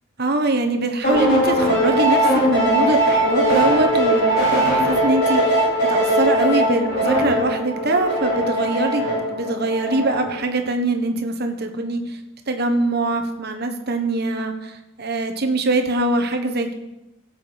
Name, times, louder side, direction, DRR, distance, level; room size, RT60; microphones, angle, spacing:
voice 1, 0.2-12.2 12.5-16.7, right 2 dB, 50° right, 6 dB, 1.3 m, -23 dB
sound 1, 1.0-10.4, right 1 dB, 45° left, 5.7 m, -20 dB
16.5 x 7.7 x 5.3 m, 0.94 s
head